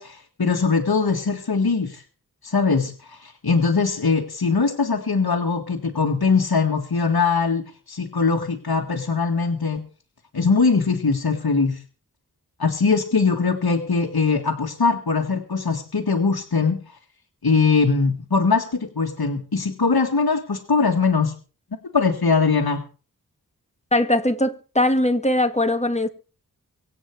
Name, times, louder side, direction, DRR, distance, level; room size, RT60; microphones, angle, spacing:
voice 1, 0.0-2.0 2.4-9.8 10.3-11.8 12.6-16.8 17.4-21.3 21.9-22.8, left 4 dB, 70° left, 1.9 m, -21 dB
voice 2, 23.9-26.1, left 1 dB, 15° left, 1.7 m, -20 dB
24.5 x 8.3 x 4.7 m
wide cardioid pair, 65°, 38 cm